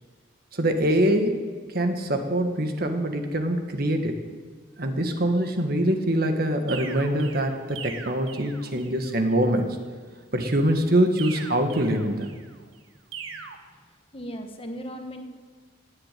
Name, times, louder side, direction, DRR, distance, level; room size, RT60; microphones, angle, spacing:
voice 1, 0.5-1.5 1.7-4.1 4.8-9.8 10.3-12.3, right 1 dB, 50° right, 5 dB, 1.5 m, -24 dB
sound 1, 6.7-9.1 11.2-12.6 13.1-13.6, right 6 dB, 75° right, 1.5 m, -40 dB
voice 2, 14.1-15.2, equal, 25° left, 5 dB, 1.3 m, -37 dB
17.5 x 8.2 x 9.1 m, 1.5 s
head